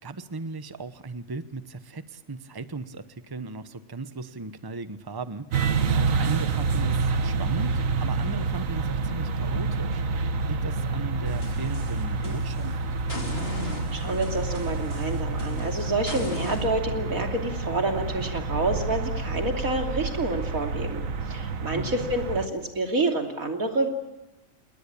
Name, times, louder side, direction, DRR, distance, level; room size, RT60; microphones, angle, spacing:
voice 1, 0.0-12.8 21.7-22.1, right 3 dB, 20° right, 11 dB, 1.0 m, -37 dB
sound 1, 5.5-22.5, right 4 dB, 75° right, 1.5 m, -28 dB
sound 2, 11.3-12.7 13.1-16.6, left 1 dB, 45° left, 4.5 m, -37 dB
voice 2, 13.9-23.9, right 2 dB, 90° right, 3 dB, 3.4 m, -28 dB
28.0 x 20.5 x 8.5 m, 0.94 s
omnidirectional pair, 1.4 m